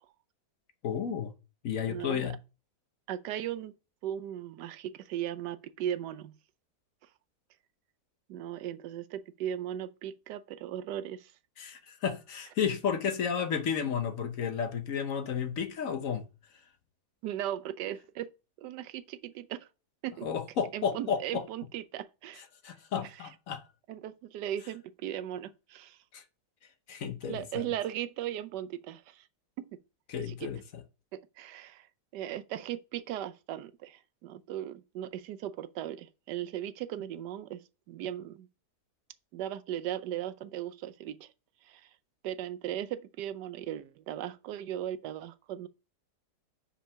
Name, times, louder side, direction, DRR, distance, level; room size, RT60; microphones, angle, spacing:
voice 1, 0.8-1.3 1.6-2.4 11.6-16.3 20.2-21.4 22.6-23.6 26.1-26.2 26.9-27.6 30.1-30.6, left 7 dB, 60° left, 1.2 m, -32 dB
voice 2, 1.9-2.3 3.1-3.7 4.0-6.3 8.3-11.3 17.2-18.3 18.6-19.7 20.0-20.3 20.7-22.4 23.9-26.0 27.3-29.3 29.6-29.8 30.3-30.5 31.1-31.9 32.1-38.5 39.3-41.3 41.6-41.9 42.2-45.7, right 11 dB, 90° right, 1.2 m, -37 dB
5.7 x 5.1 x 5.5 m
omnidirectional pair, 1.8 m